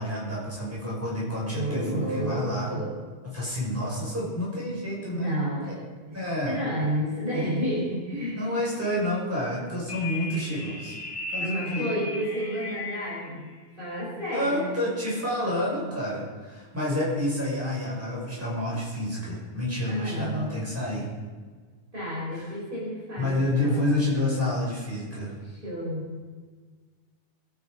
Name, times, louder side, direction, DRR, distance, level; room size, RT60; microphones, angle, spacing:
voice 1, 0.0-2.7 3.2-5.3 5.7-5.8 6.1-6.6 8.4-11.0 11.3-11.9 14.3-21.1 22.3-22.5 23.2-25.3, left 1 dB, 10° right, -6 dB, 6.5 m, -29 dB
voice 2, 1.5-3.0 5.1-5.8 6.1-8.4 11.4-14.9 19.8-20.6 21.9-24.0 25.4-26.1, equal, 50° right, -6 dB, 5.5 m, -31 dB
sound 1, 9.9-13.4, left 2 dB, 30° left, 1.4 m, -36 dB
21.5 x 10.0 x 5.4 m, 1.5 s
omnidirectional pair, 1.2 m